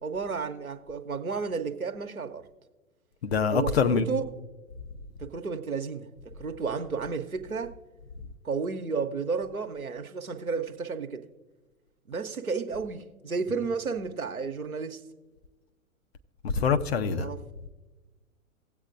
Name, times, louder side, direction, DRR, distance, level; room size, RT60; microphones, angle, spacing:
voice 1, 0.0-2.5 3.5-4.2 5.2-7.7 8.4-11.2 12.1-15.0 17.0-17.4, right 5 dB, 85° right, 0.9 m, -32 dB
voice 2, 3.2-4.0 16.4-17.3, left 6 dB, 50° left, 0.8 m, -24 dB
18.0 x 8.0 x 2.5 m
figure-of-eight pair, 115°, 42 cm